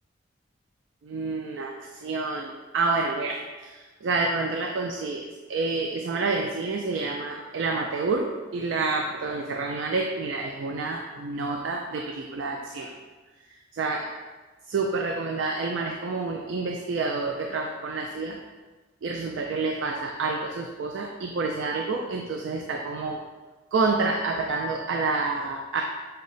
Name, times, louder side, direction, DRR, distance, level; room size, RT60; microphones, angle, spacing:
voice 1, 1.0-5.2 5.5-12.9 13.8-14.1 14.7-18.4 19.0-23.2 23.7-25.8, right 3 dB, 70° right, 2 dB, 0.3 m, -28 dB
5.4 x 2.0 x 3.9 m, 1.3 s
head